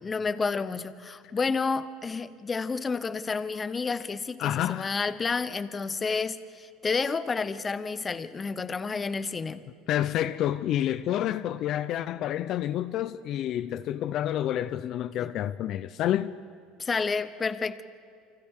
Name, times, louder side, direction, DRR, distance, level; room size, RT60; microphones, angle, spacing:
voice 1, 0.0-9.6 15.2-15.3 16.8-17.8, left 4 dB, 25° left, 0.9 m, -30 dB
voice 2, 4.4-5.0 9.9-16.4, left 11 dB, 55° left, 0.6 m, -29 dB
29.0 x 25.5 x 3.7 m
supercardioid pair, 115°, 0 cm